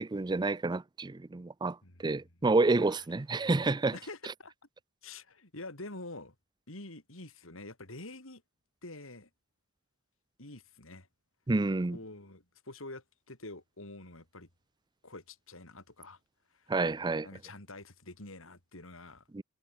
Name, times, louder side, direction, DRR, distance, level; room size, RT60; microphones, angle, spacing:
voice 1, 0.0-3.9 11.5-12.0 16.7-17.3 19.3-19.4, right 3 dB, 20° right, 0.5 m, -29 dB
voice 2, 3.9-4.5 5.0-6.3 6.7-8.4 8.8-9.3 10.4-11.1 11.9-14.5 15.0-16.2 16.5-16.7 17.2-19.2, left 2 dB, 65° left, 5.0 m, -47 dB
head